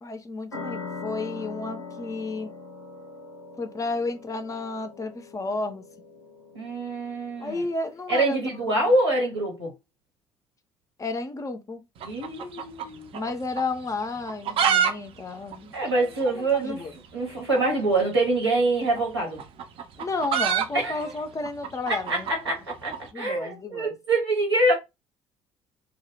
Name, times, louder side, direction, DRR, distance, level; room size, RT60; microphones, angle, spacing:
voice 1, 0.0-2.5 3.6-5.8 7.4-8.4 8.8-8.9 11.0-11.8 13.1-16.1 16.3-16.9 20.0-22.3 23.1-23.9, left 3 dB, 25° left, 0.4 m, -32 dB
sound 1, 0.5-7.7, left 4 dB, 85° left, 0.5 m, -41 dB
voice 2, 6.5-7.6 8.1-9.7 12.0-13.1 15.7-16.8 17.1-19.4 20.7-21.0 21.9-24.7, right 2 dB, 85° right, 0.9 m, -25 dB
sound 2, 12.0-13.3 13.6-13.7 14.2-14.9 15.2-15.3 15.5-15.6 16.2-16.3 17.5-17.7 18.8-23.0, right 8 dB, 45° right, 0.4 m, -26 dB
2.1 x 2.0 x 3.1 m
figure-of-eight pair, 50°, 14 cm